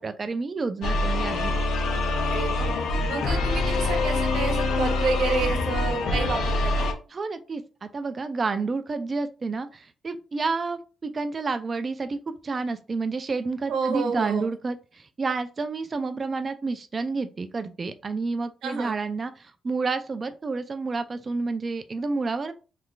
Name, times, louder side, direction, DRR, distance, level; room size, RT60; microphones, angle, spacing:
voice 1, 0.0-1.5 7.1-22.5, right 4 dB, 30° right, 0.4 m, -30 dB
sound 1, 0.8-6.9, left 2 dB, 75° left, 0.6 m, -25 dB
voice 2, 2.3-2.7 3.1-6.9 13.7-14.5 18.6-19.0, right 5 dB, 85° right, 0.9 m, -29 dB
3.2 x 2.3 x 3.8 m
cardioid pair, 155°, 0 cm